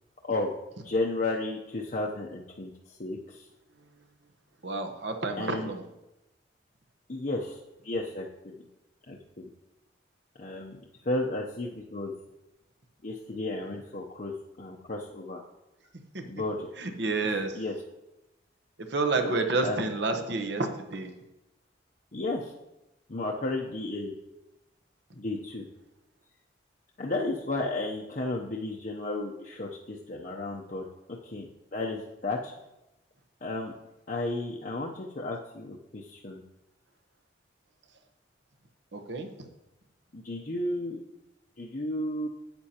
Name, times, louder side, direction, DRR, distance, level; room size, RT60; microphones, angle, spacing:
voice 1, 0.8-3.5 5.4-5.7 7.1-8.5 9.1-9.5 10.4-12.1 13.0-14.3 14.6-15.4 16.3-16.7 17.3-17.7 19.2-19.4 19.6-19.9 22.1-22.5 23.1-24.1 25.1-25.6 27.0-32.5 33.4-33.7 34.1-36.4 40.1-41.0 41.6-42.3, left 2 dB, 45° left, -2 dB, 0.7 m, -33 dB
voice 2, 4.6-5.8 16.1-16.2 16.8-17.6 18.9-21.1 38.9-39.5, right 3 dB, 65° right, 6 dB, 1.0 m, -29 dB
11.0 x 8.7 x 2.9 m, 0.95 s
head